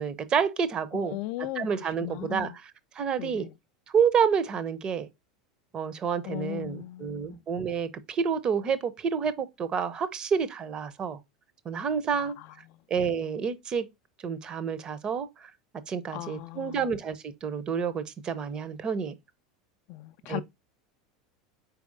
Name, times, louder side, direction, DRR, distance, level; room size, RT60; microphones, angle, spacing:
voice 1, 0.0-1.2 1.6-2.5 3.0-3.5 3.9-5.1 5.7-11.2 11.7-12.4 12.9-13.9 14.2-15.3 15.9-19.1 20.3-20.4, right 6 dB, 30° right, 0.6 m, -29 dB
voice 2, 0.9-2.6 3.2-3.6 6.2-7.4 12.1-12.8 16.1-16.9 19.9-20.4, left 16 dB, 50° left, 0.3 m, -38 dB
4.5 x 4.0 x 2.6 m
figure-of-eight pair, 80°, 3 cm